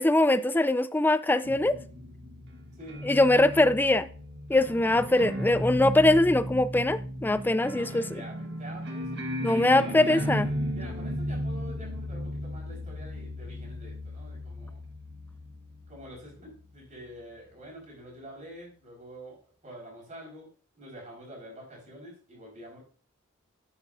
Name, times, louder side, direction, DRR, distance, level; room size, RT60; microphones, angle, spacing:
voice 1, 0.0-1.8 3.0-4.1 4.5-8.0 9.4-10.5, left 2 dB, 10° left, 0.3 m, -22 dB
sound 1, 1.4-16.8, equal, 55° right, 1.5 m, -35 dB
voice 2, 7.7-9.2 9.7-10.3 10.7-14.9 15.9-19.4 19.6-20.5 20.7-22.8, equal, 35° right, 4.8 m, -46 dB
10.0 x 8.4 x 2.7 m
head